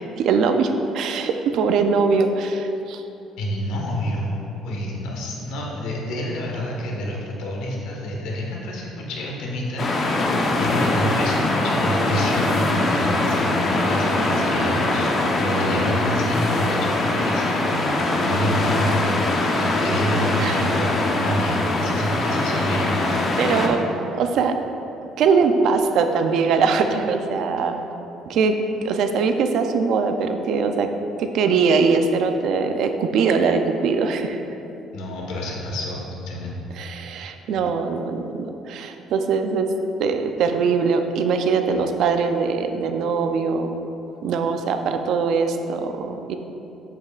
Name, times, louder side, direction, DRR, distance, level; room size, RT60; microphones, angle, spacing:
voice 1, 0.0-3.0 15.7-15.9 20.4-20.7 23.4-24.6 25.2-27.8 28.3-28.5 28.8-30.9 31.2-34.4 36.8-39.7 40.0-43.8 44.2-46.4, right 5 dB, 65° right, 6 dB, 0.5 m, -22 dB
voice 2, 3.4-4.4 4.6-10.3 10.6-19.1 19.6-23.2 34.9-36.6, equal, 85° left, -2 dB, 1.4 m, -28 dB
sound 1, 9.8-23.7, left 2 dB, 35° left, 0.8 m, -22 dB
7.7 x 7.5 x 2.4 m, 2.9 s
cardioid pair, 125°, 0 cm